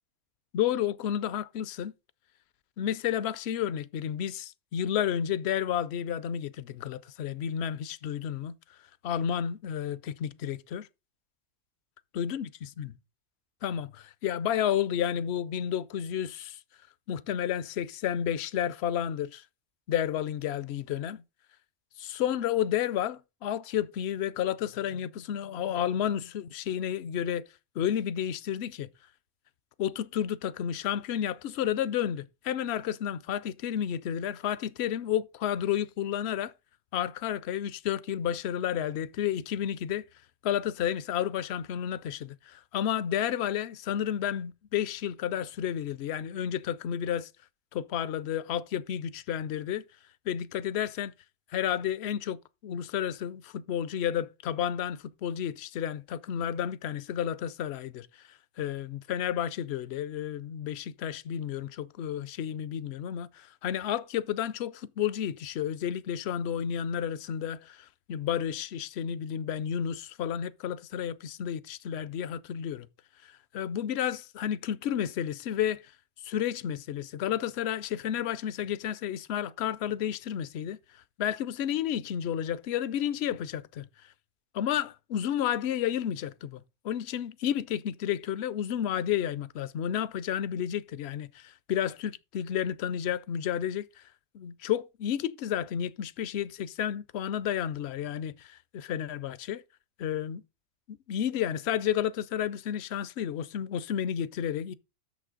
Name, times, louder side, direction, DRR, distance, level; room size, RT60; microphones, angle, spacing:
voice 1, 0.5-1.9 2.8-8.5 9.0-10.9 12.2-12.5 12.8-12.9 13.6-16.6 17.1-19.4 19.9-21.2 22.0-27.5 27.8-28.9 29.8-36.5 36.9-40.0 40.4-47.3 47.7-49.8 50.3-51.1 51.5-58.1 58.6-72.9 73.2-75.8 76.2-80.8 81.2-83.9 84.5-86.6 86.8-93.9 94.3-99.6 100.0-100.4 100.9-104.7, left 10 dB, 65° left, 0.7 m, -31 dB
8.3 x 6.7 x 3.8 m
omnidirectional pair, 1.5 m